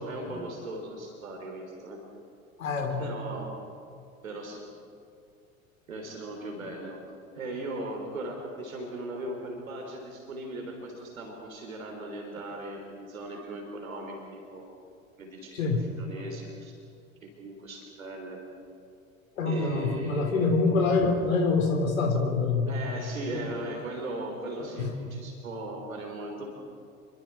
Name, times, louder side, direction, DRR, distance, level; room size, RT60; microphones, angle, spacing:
voice 1, 0.0-2.0 3.0-3.5 4.2-4.7 5.9-7.0 7.3-14.7 15.2-15.7 16.0-16.8 17.2-18.4 19.5-20.7 22.7-26.5, right 1 dB, 80° right, 1 dB, 3.7 m, -38 dB
voice 2, 2.6-3.1 15.5-15.9 19.4-22.8 23.3-23.4 24.8-24.9, left 4 dB, 75° left, 4 dB, 3.7 m, -26 dB
28.0 x 24.0 x 4.5 m, 2.5 s
figure-of-eight pair, 75°, 41 cm